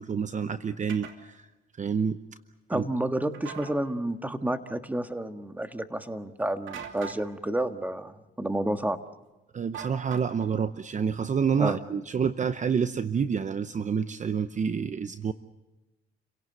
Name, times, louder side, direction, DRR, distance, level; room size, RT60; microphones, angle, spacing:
voice 1, 0.0-1.4 1.8-2.2 2.7-2.8 9.5-15.3, right 6 dB, 40° right, 12 dB, 0.8 m, -28 dB
sound 1, 0.9-1.2 3.3-3.7 6.7-7.2 9.7-10.5, right 7 dB, 80° right, 2.8 m, -40 dB
voice 2, 2.7-9.0 11.6-11.8, right 1 dB, 10° right, 8 dB, 1.6 m, -30 dB
29.5 x 17.5 x 7.9 m, 1.0 s
cardioid pair, 90°, 20 cm